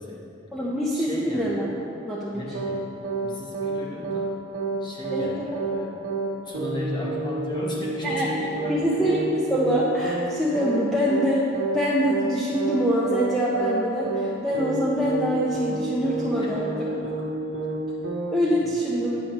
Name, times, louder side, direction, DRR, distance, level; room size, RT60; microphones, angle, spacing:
voice 1, 0.0-0.3 0.9-1.5 2.3-2.9 3.2-4.4 4.8-6.0 6.4-9.0 11.2-11.4 12.5-12.6 16.4-17.6 18.6-19.0, left 1 dB, 25° left, -4 dB, 0.9 m, -36 dB
voice 2, 0.5-1.7 2.0-2.4 5.1-5.6 8.0-8.3 8.7-9.2 9.5-11.4 11.7-16.9 18.3-19.2, equal, ahead, -7 dB, 0.6 m, -24 dB
sound 1, 2.5-2.8 3.0-3.3 3.5-3.8 4.0-4.3 4.5-4.8 5.0-5.3 5.5-5.8 6.0-6.3 6.5-6.8 7.0-7.3 7.5-7.8 8.0-8.3 8.5-8.8 9.0-9.3 9.5-9.8 10.0-10.3 10.5-10.8 11.0-11.3 11.5-11.8 12.0-12.3 12.5-12.8 13.0-13.3 13.5-13.8 14.0-14.3 14.5-14.8 15.0-15.3 15.5-15.8 16.0-16.3 16.5-16.8 17.0-17.3 17.5-17.8 18.0-18.3, right 4 dB, 75° right, 0.9 m, -29 dB
8.5 x 6.9 x 2.9 m, 2.8 s
head